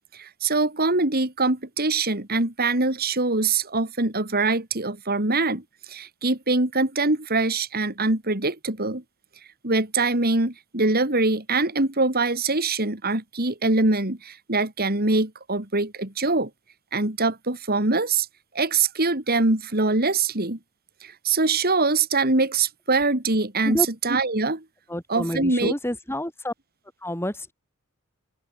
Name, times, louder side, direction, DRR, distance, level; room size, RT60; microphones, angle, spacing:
voice 1, 0.1-9.0 9.6-16.5 16.9-18.3 18.5-20.6 21.0-24.6 25.1-25.7, right 3 dB, 45° right, 3.6 m, -23 dB
voice 2, 24.9-26.5 27.0-27.5, left 1 dB, 10° left, 7.0 m, -28 dB
open air
head